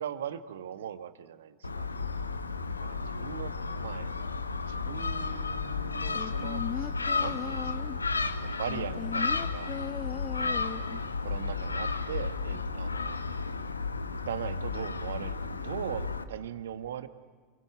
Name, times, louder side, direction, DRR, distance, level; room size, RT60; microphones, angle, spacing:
voice 1, 0.0-1.9 2.8-4.1 4.7-6.9 7.2-8.0 8.4-9.8 10.5-10.8 11.2-13.2 14.3-17.1, right 9 dB, 70° right, 11 dB, 1.4 m, -40 dB
Gull seagull, 1.6-16.2, left 4 dB, 90° left, 1.0 m, -33 dB
sound 1, 6.1-8.1 8.7-11.1 11.4-11.5, left 8 dB, 35° left, 1.0 m, -38 dB
28.0 x 23.0 x 9.4 m, 1.5 s
figure-of-eight pair, 85°, 0 cm